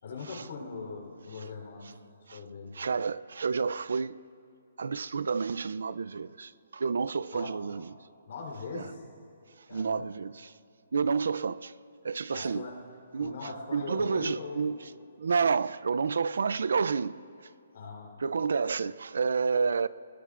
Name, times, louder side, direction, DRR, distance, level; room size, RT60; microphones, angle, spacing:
voice 1, 0.0-2.0 2.3-2.8 7.3-7.5 8.3-9.0 9.7-10.1 12.3-12.8 13.1-14.7 17.7-18.1, left 4 dB, 55° left, 3.5 m, -40 dB
voice 2, 2.7-4.2 4.8-7.9 8.7-8.9 9.7-10.5 10.9-11.7 12.0-12.7 13.1-13.4 13.7-14.8 15.2-17.2 18.2-19.9, right 5 dB, 80° right, 0.4 m, -29 dB
23.5 x 20.5 x 2.5 m
hypercardioid pair, 170°, 0 cm